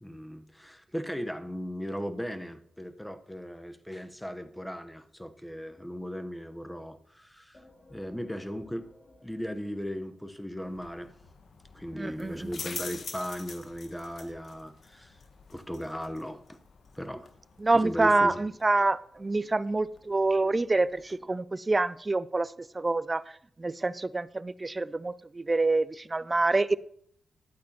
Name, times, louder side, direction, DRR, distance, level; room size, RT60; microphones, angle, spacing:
voice 1, 0.0-7.6 7.9-8.9 9.2-11.1 11.7-15.2 15.5-16.6 16.9-17.3 17.7-18.4, equal, 5° left, 1.0 m, -37 dB
sound 1, 7.5-11.1, left 2 dB, 40° left, 2.2 m, -58 dB
sound 2, 10.6-21.2, left 5 dB, 65° left, 1.1 m, -47 dB
voice 2, 11.9-12.6 17.6-23.2 23.6-26.8, right 2 dB, 35° right, 0.4 m, -27 dB
12.0 x 8.3 x 3.0 m
supercardioid pair, 40°, 0 cm